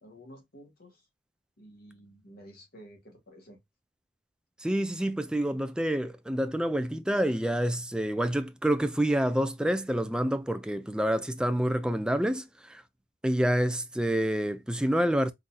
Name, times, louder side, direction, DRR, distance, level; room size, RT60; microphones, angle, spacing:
voice 1, 0.0-1.1 1.6-3.6, equal, 55° left, 1.5 m, -51 dB
voice 2, 4.6-12.8 13.2-15.3, right 1 dB, 5° right, 0.3 m, -28 dB
3.8 x 2.7 x 2.2 m
head